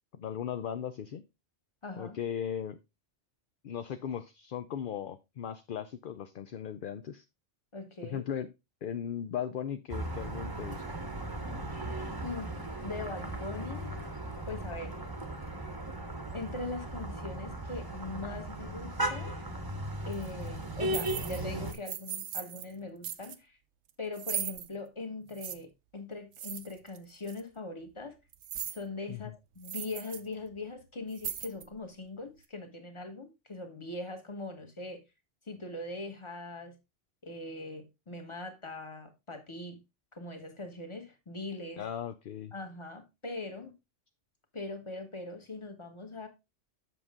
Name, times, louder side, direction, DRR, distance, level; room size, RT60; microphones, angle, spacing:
voice 1, 0.2-1.2 2.0-2.8 3.6-7.2 8.0-8.5 8.8-10.8 29.1-29.2 41.8-42.5, left 9 dB, 55° left, 0.7 m, -37 dB
voice 2, 1.8-2.2 7.7-8.2 12.2-12.5 12.8-14.0 14.5-15.0 16.3-19.3 20.0-23.6 24.0-28.1 28.7-35.0 35.5-36.8 37.2-39.8 40.1-41.9 42.5-43.7 44.5-46.3, left 3 dB, 25° left, 1.4 m, -41 dB
sound 1, 9.9-21.7, right 1 dB, 20° right, 0.9 m, -37 dB
sound 2, 20.1-20.3 20.8-21.4 21.7-22.7 23.0-23.4 24.1-24.7 25.3-25.5 26.3-27.0 27.3-27.4 28.3-28.8 29.2-29.3 29.6-30.2 30.5-30.6 31.1-31.8, right 10 dB, 75° right, 1.0 m, -38 dB
7.8 x 6.2 x 3.6 m
omnidirectional pair, 1.2 m